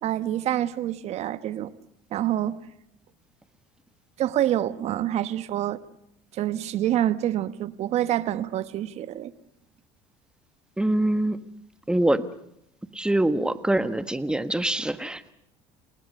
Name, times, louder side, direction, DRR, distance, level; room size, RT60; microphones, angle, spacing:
voice 1, 0.0-1.7 2.1-2.6 4.2-5.8 6.3-9.3, right 12 dB, 55° right, 14 dB, 1.2 m, -26 dB
voice 2, 10.8-11.4 11.9-12.2 12.9-15.3, right 1 dB, 5° right, 12 dB, 1.4 m, -24 dB
28.5 x 19.0 x 6.6 m, 0.76 s
supercardioid pair, 85°, 13 cm